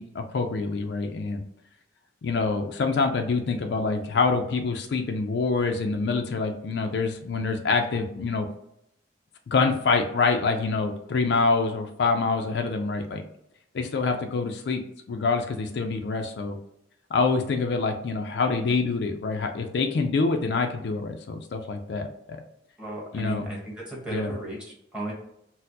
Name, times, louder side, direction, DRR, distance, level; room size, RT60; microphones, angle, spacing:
voice 1, 0.0-1.4 2.2-8.5 9.5-13.2 13.7-16.6 17.1-22.4 23.1-23.5 24.1-24.3, left 4 dB, 65° left, 5 dB, 0.4 m, -26 dB
voice 2, 22.8-25.1, right 1 dB, 5° right, -4 dB, 1.1 m, -35 dB
4.2 x 2.0 x 2.7 m, 0.77 s
head